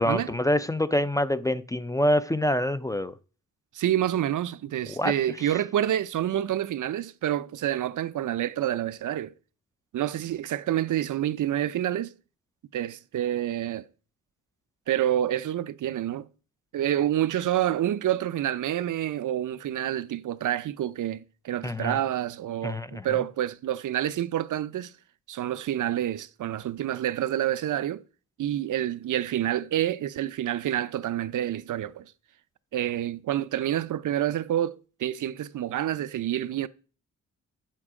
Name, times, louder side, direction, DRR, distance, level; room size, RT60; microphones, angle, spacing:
voice 1, 0.0-3.1 4.9-5.1 5.4-5.5 21.6-22.0 22.6-23.1, left 1 dB, 10° left, 0.4 m, -26 dB
voice 2, 3.7-9.3 9.9-12.1 12.7-13.9 14.9-16.3 16.7-24.9 25.3-28.0 28.4-32.1 32.7-36.7, right 12 dB, 75° right, 0.6 m, -28 dB
9.0 x 7.6 x 4.8 m
wide cardioid pair, 130°, 31 cm